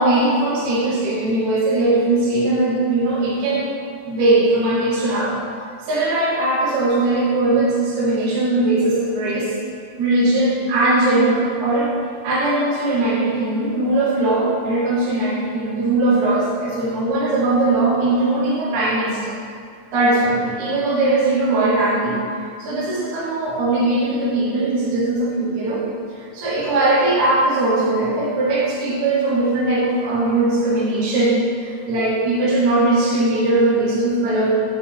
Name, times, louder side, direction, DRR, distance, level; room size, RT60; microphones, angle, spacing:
voice 1, 0.0-3.7 4.1-5.4 5.8-9.5 10.0-11.9 12.2-19.3 19.9-22.2 22.6-25.9 26.1-34.5, right 2 dB, 65° right, -7 dB, 2.2 m, -19 dB
7.6 x 6.9 x 3.3 m, 2.3 s
omnidirectional pair, 4.1 m